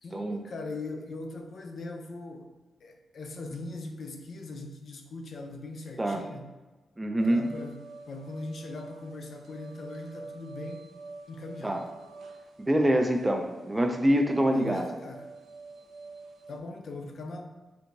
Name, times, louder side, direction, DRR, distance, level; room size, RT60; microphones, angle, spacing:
voice 1, 0.0-2.5 2.8-6.5 7.3-10.9 11.3-11.8 14.5-15.3 16.5-17.5, left 2 dB, 55° left, 4 dB, 0.4 m, -40 dB
voice 2, 7.0-7.5 11.6-11.8 12.6-14.9, right 1 dB, 15° right, 4 dB, 0.4 m, -25 dB
sound 1, 7.2-16.6, right 3 dB, 90° right, 0.6 m, -47 dB
4.5 x 3.4 x 2.6 m, 1.2 s
wide cardioid pair, 125°, 0 cm